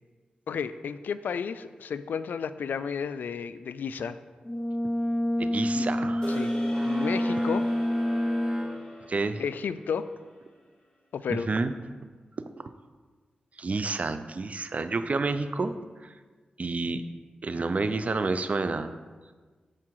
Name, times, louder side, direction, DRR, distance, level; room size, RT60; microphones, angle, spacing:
voice 1, 0.5-4.2 5.7-5.9 6.3-6.5 6.8-7.7 9.4-10.1 11.1-11.5, left 6 dB, 90° left, 13 dB, 0.3 m, -32 dB
Brass instrument, 4.4-8.8, equal, 10° left, 0.5 m, -27 dB
voice 2, 5.4-6.5 9.1-9.4 11.3-11.7 13.6-15.7 16.6-17.0 17.4-18.9, right 3 dB, 50° right, 10 dB, 0.5 m, -29 dB
sound 1, 6.2-10.7, equal, 30° left, 2.0 m, -43 dB
sound 2, 6.7-9.6, right 1 dB, 25° right, 0.8 m, -41 dB
9.7 x 4.7 x 4.7 m, 1.4 s
cardioid pair, 60°, 3 cm